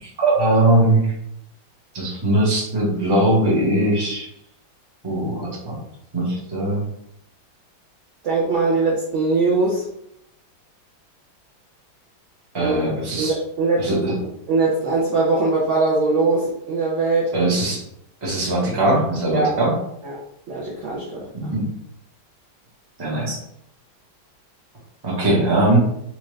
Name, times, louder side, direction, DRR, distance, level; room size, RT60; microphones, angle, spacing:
voice 1, 0.0-1.1 1.9-4.3 5.0-5.8 6.1-6.8 12.5-13.3 13.8-14.1 17.3-17.8 18.2-19.8 21.3-21.6 23.0-23.4 25.0-25.8, right 1 dB, 25° right, -4 dB, 0.6 m, -20 dB
voice 2, 8.2-9.8 12.6-12.8 13.2-14.1 14.5-17.3 19.3-19.5 20.0-20.2 20.5-21.2, right 3 dB, 75° right, -4 dB, 0.6 m, -21 dB
4.3 x 2.5 x 3.2 m, 0.75 s
omnidirectional pair, 2.2 m